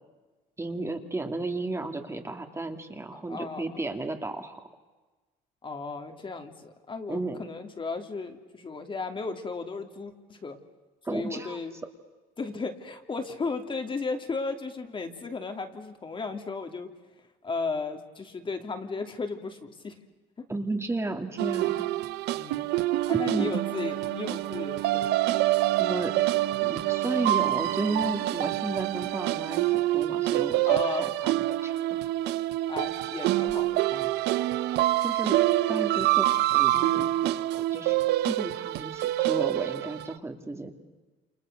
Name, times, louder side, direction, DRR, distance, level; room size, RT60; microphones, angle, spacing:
voice 1, 0.6-4.6 7.1-7.4 11.0-11.6 20.5-21.9 23.1-23.5 25.8-26.2 26.6-32.1 35.0-35.4 35.7-38.0 38.2-40.7, right 2 dB, 15° right, 5 dB, 2.7 m, -33 dB
voice 2, 3.1-3.6 5.6-10.6 11.1-11.7 12.4-16.9 17.4-20.0 22.3-22.7 23.1-25.1 30.6-31.1 32.7-34.1, left 4 dB, 30° left, 5 dB, 2.9 m, -35 dB
sound 1, 21.4-40.1, right 16 dB, 85° right, 0.9 m, -26 dB
29.0 x 28.5 x 6.7 m, 1.2 s
cardioid pair, 110°, 17 cm